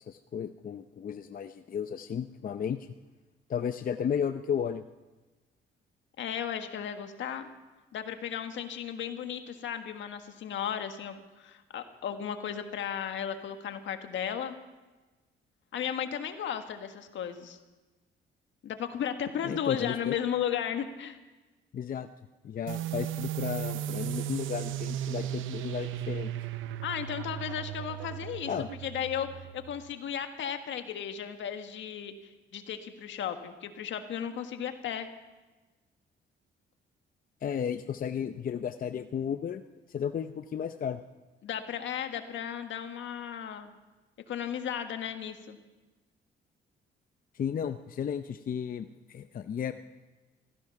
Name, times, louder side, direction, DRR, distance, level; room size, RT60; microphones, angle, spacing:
voice 1, 0.0-2.8 3.5-4.8 19.4-20.1 21.7-22.1 22.4-26.3 28.5-28.7 37.4-39.6 39.9-41.0 47.3-49.7, left 8 dB, 45° left, 9 dB, 0.6 m, -33 dB
voice 2, 6.2-7.5 7.9-14.6 15.7-17.6 18.6-21.2 26.8-28.5 28.8-35.1 41.4-43.7 44.3-45.6, left 9 dB, 70° left, 7 dB, 1.5 m, -35 dB
sound 1, 22.7-29.9, right 12 dB, 85° right, 0.7 m, -36 dB
15.5 x 15.0 x 5.9 m, 1.2 s
cardioid pair, 90°, 20 cm